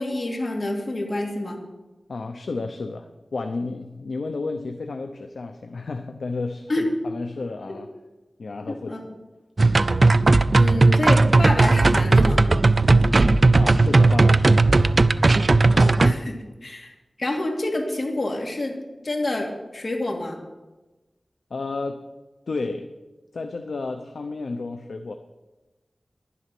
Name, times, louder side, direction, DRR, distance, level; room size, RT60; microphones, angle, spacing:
voice 1, 0.0-1.6 6.7-6.9 8.7-9.2 10.5-12.5 15.7-16.9 17.2-18.8 19.0-20.4, left 1 dB, 50° left, 1 dB, 2.5 m, -28 dB
voice 2, 2.1-7.9 8.4-9.0 13.5-14.9 21.5-22.0 22.5-22.9 23.3-25.1, left 3 dB, 85° left, 6 dB, 0.7 m, -32 dB
sound 1, 9.6-16.1, right 3 dB, 50° right, 0.4 m, -16 dB
11.0 x 11.0 x 6.1 m, 1.1 s
wide cardioid pair, 85°, 0 cm